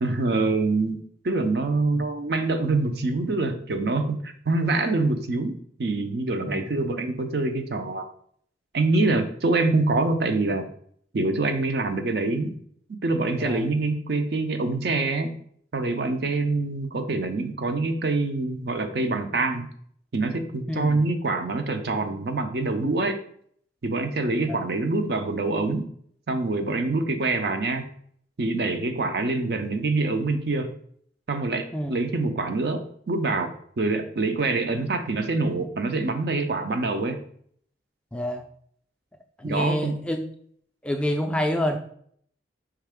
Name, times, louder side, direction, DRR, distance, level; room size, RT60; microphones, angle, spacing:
voice 1, 0.0-5.5 5.8-8.0 8.7-10.7 11.1-12.6 13.0-15.3 15.7-19.7 20.1-23.2 23.8-25.8 26.3-27.9 28.4-30.7 31.3-37.2 39.4-40.0, right 3 dB, 60° right, 7 dB, 0.5 m, -25 dB
voice 2, 6.5-6.8 13.4-13.7 20.7-21.1 24.5-24.6 31.7-32.0 38.1-38.4 39.4-40.2 40.8-41.8, equal, 5° left, 3 dB, 0.3 m, -28 dB
4.6 x 3.2 x 3.5 m, 0.62 s
head